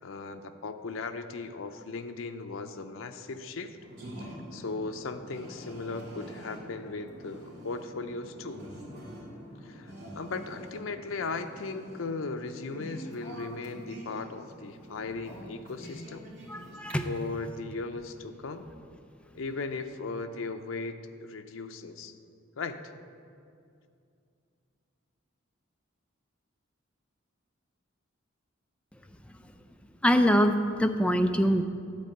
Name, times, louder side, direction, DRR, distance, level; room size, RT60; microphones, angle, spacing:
voice 1, 0.0-3.8 4.2-8.6 9.6-16.3 17.0-18.7 19.3-22.1 22.6-22.9, left 3 dB, 80° left, 7 dB, 0.6 m, -37 dB
sound 1, 3.8-16.9, right 1 dB, 55° right, 2.6 m, -46 dB
voice 2, 16.5-17.1 30.0-31.6, equal, 5° left, 6 dB, 0.4 m, -24 dB
10.5 x 4.3 x 7.8 m, 2.4 s
head